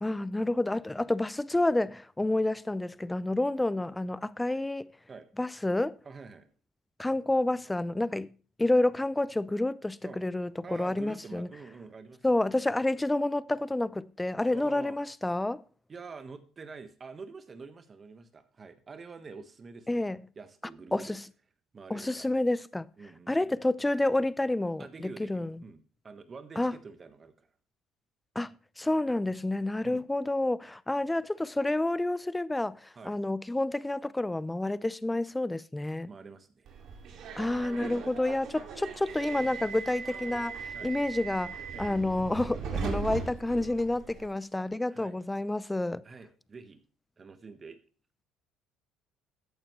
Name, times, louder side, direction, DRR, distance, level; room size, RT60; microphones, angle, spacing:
voice 1, 0.0-4.9 5.4-6.0 7.0-8.3 8.6-11.5 12.2-15.6 19.9-20.2 20.9-21.2 21.9-22.9 23.3-25.6 26.6-26.7 28.4-36.1 37.4-46.0, left 2 dB, 10° left, 0.5 m, -29 dB
voice 2, 6.0-6.5 10.0-10.2 10.6-12.2 14.5-15.0 15.9-20.1 20.3-21.2 21.7-22.3 23.0-23.6 24.8-27.5 29.8-30.1 32.9-33.2 36.1-36.7 37.9-38.2 40.7-40.9 41.7-41.9 44.9-45.1 46.0-46.8 47.2-47.8, right 4 dB, 35° right, 1.4 m, -47 dB
Subway metro underground, 36.7-44.3, right 6 dB, 60° right, 2.5 m, -39 dB
13.5 x 8.8 x 3.2 m
supercardioid pair, 70°, 0 cm